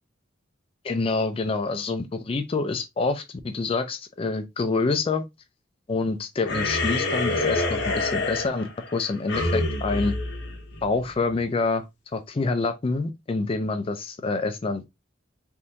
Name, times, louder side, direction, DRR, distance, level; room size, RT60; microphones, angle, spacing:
voice 1, 0.8-5.2 5.9-10.1 10.8-11.9 12.1-14.9, left 3 dB, 30° left, 0.3 m, -27 dB
sound 1, 6.4-11.2, left 2 dB, 65° left, 1.0 m, -27 dB
3.5 x 2.5 x 2.8 m
head